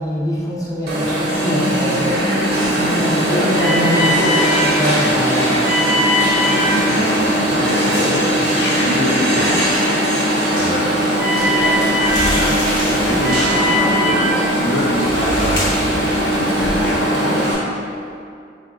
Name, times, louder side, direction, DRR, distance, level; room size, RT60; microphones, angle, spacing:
voice 1, 0.0-2.3 3.0-5.7, equal, 20° left, -7 dB, 0.6 m, -23 dB
Alarm, 0.9-17.6, equal, 55° right, 0.7 m, -18 dB
voice 2, 6.6-10.2 10.5-10.9 12.3-12.6 12.9-15.5 16.0-17.7, left 1 dB, 65° left, -3 dB, 0.5 m, -25 dB
sound 1, 11.4-16.9, equal, 85° left, 1.0 m, -27 dB
3.7 x 2.4 x 2.4 m, 2.4 s
head